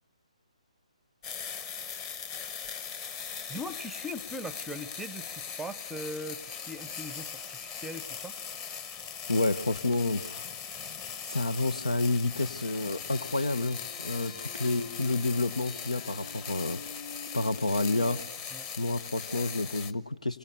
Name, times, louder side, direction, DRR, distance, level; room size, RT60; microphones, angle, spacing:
sound 1, 1.2-19.9, left 7 dB, 20° left, 1.3 m, -40 dB
voice 1, 3.5-8.4 14.0-14.6 18.5-18.7, equal, ahead, 16 dB, 0.9 m, -40 dB
voice 2, 9.3-10.4 11.3-16.8 17.3-18.2 18.8-20.4, left 2 dB, 70° left, 16 dB, 1.2 m, -29 dB
sound 2, 13.1-18.2, left 6 dB, 55° left, 2.5 m, -48 dB
28.5 x 25.0 x 6.9 m, 0.91 s
figure-of-eight pair, 140°, 4 cm